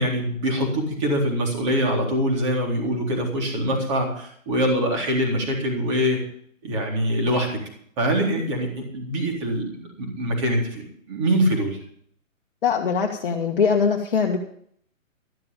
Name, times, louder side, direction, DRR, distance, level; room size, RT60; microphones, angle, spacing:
voice 1, 0.0-6.2 6.6-7.5 8.0-11.8, equal, 20° right, 0 dB, 3.8 m, -24 dB
voice 2, 12.6-14.4, left 6 dB, 40° left, 0 dB, 1.7 m, -22 dB
14.0 x 12.5 x 5.4 m, 0.63 s
hypercardioid pair, 170°, 40 cm